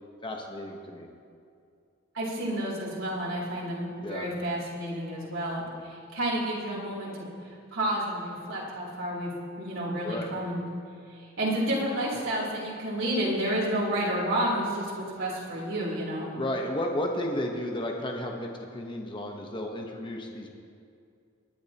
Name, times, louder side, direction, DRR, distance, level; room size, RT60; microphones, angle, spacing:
voice 1, 0.2-1.1 4.0-4.3 10.0-10.3 12.1-12.2 16.3-20.5, left 1 dB, 25° left, 1 dB, 1.1 m, -33 dB
voice 2, 2.1-7.3 7.7-9.3 9.6-10.6 11.4-16.3, right 1 dB, 90° right, -5 dB, 3.5 m, -30 dB
21.5 x 10.5 x 2.9 m, 2.4 s
head